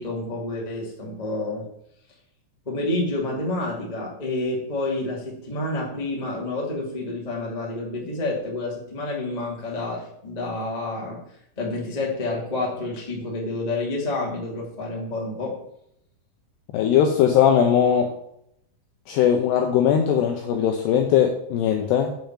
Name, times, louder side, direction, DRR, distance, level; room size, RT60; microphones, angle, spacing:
voice 1, 0.0-1.6 2.6-11.2 11.6-15.5, left 2 dB, 35° left, -4 dB, 0.6 m, -29 dB
voice 2, 16.7-18.1 19.1-22.1, left 9 dB, 90° left, 4 dB, 2.4 m, -19 dB
7.6 x 5.4 x 7.4 m, 0.73 s
omnidirectional pair, 5.8 m